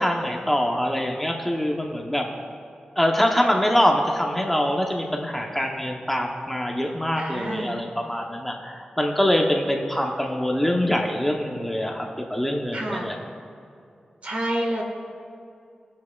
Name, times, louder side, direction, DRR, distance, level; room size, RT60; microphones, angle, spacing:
voice 1, 0.0-2.2 3.0-13.2, equal, 5° left, 1 dB, 0.8 m, -24 dB
voice 2, 7.1-7.8 12.7-13.1 14.2-14.8, right 1 dB, 55° right, 0 dB, 1.5 m, -28 dB
19.0 x 7.3 x 2.3 m, 2.5 s
wide cardioid pair, 125°, 3 cm